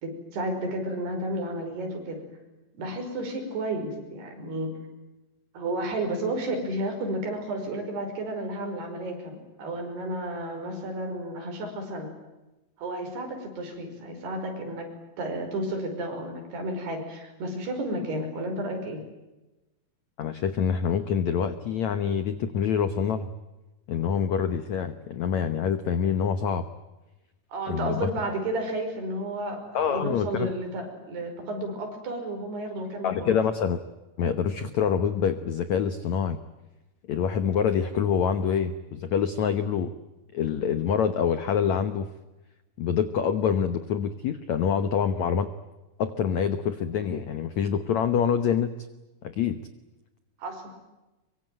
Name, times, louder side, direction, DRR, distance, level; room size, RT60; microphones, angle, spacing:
voice 1, 0.0-2.2 2.7-4.7 5.5-12.1 12.8-14.9 15.2-19.0 27.5-33.3 50.4-50.7, right 1 dB, 65° right, 4 dB, 7.3 m, -32 dB
voice 2, 20.2-23.3 23.9-26.7 27.7-28.1 29.7-30.5 33.0-33.8 34.2-36.4 37.1-39.9 40.3-42.1 42.8-45.5 46.0-48.7 49.2-49.6, left 7 dB, 75° left, 11 dB, 1.6 m, -26 dB
25.0 x 23.5 x 9.2 m, 1.1 s
omnidirectional pair, 4.9 m